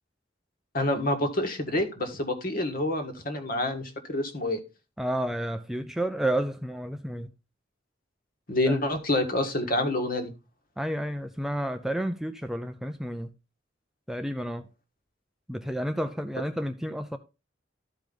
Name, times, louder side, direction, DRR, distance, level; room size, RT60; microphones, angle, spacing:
voice 1, 0.7-4.6 8.5-10.3, left 1 dB, 50° left, 1.6 m, -27 dB
voice 2, 5.0-7.3 8.7-8.8 10.8-13.3 14.1-14.7 15.5-17.2, right 1 dB, ahead, 0.4 m, -31 dB
13.0 x 5.0 x 3.8 m
head